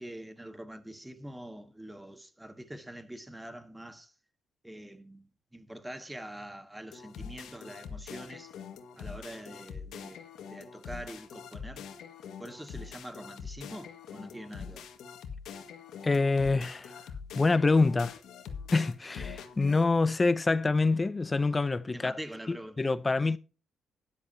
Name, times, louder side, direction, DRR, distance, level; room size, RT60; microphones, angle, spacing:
voice 1, 0.0-4.1 4.6-8.5 9.0-10.2 10.5-11.9 12.4-14.9 21.9-22.9, right 1 dB, 10° right, 1.4 m, -44 dB
sound 1, 6.9-19.8, left 6 dB, 75° left, 1.8 m, -44 dB
voice 2, 16.0-16.9 17.3-18.1 18.7-22.1 22.5-23.4, left 3 dB, 25° left, 0.6 m, -26 dB
13.0 x 10.5 x 2.8 m
cardioid pair, 90°, 0 cm